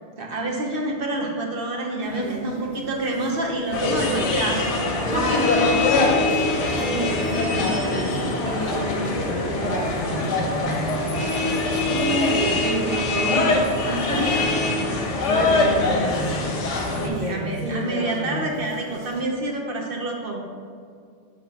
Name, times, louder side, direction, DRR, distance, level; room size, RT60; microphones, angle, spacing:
voice 1, 0.2-4.7 5.1-5.7 6.8-7.0 11.8-13.5 14.2-14.3 17.0-20.4, right 2 dB, 55° right, 0 dB, 0.9 m, -27 dB
sound 1, 2.0-19.2, right 2 dB, 80° right, 1.1 m, -37 dB
sound 2, 3.7-17.1, left 2 dB, 85° left, 1.1 m, -23 dB
voice 2, 5.0-5.9 6.4-11.1 13.8-16.4 16.9-18.4, left 1 dB, 45° left, -2 dB, 0.8 m, -31 dB
5.7 x 3.5 x 5.3 m, 2.2 s
omnidirectional pair, 1.2 m